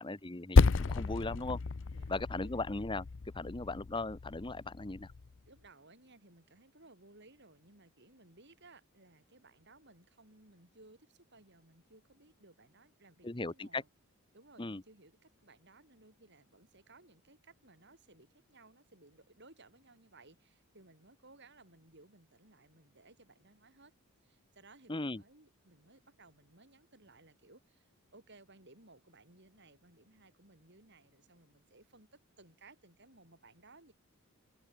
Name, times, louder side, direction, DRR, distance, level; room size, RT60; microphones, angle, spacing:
voice 1, 0.0-1.6 2.1-3.1 3.3-5.1 13.2-13.8 14.6-14.8 24.9-25.2, left 2 dB, 20° left, 0.9 m, -38 dB
Percussion, 0.6-5.4, left 4 dB, 60° left, 0.6 m, -31 dB
voice 2, 1.9-2.5 5.5-13.9 14.3-23.9 24.2-33.9, right 2 dB, 50° right, 7.6 m, -61 dB
open air
head